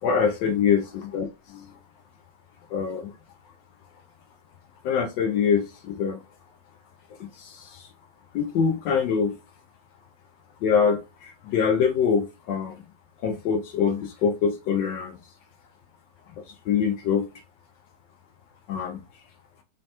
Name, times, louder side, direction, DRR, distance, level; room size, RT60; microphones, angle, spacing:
voice 1, 0.0-1.8 2.7-3.1 4.8-6.2 7.1-7.9 8.3-9.4 10.6-12.9 13.2-15.2 16.3-17.3 18.7-19.0, left 6 dB, 75° left, 1.1 m, -25 dB
5.2 x 2.2 x 2.8 m
omnidirectional pair, 2.3 m